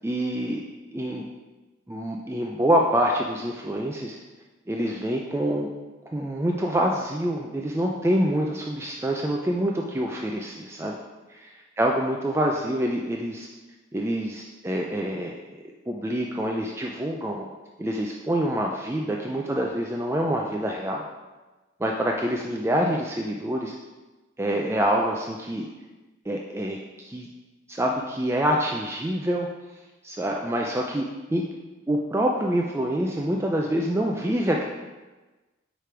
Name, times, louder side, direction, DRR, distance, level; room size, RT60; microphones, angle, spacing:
voice 1, 0.0-0.6 0.9-1.3 1.9-4.2 4.7-5.7 6.1-11.0 11.3-13.5 13.9-15.3 15.9-17.5 17.8-21.0 21.8-23.8 24.4-25.7 26.3-27.3 27.7-29.5 30.0-31.5 31.9-34.6, right 1 dB, 15° right, 0 dB, 0.3 m, -26 dB
5.0 x 4.9 x 4.4 m, 1.2 s
head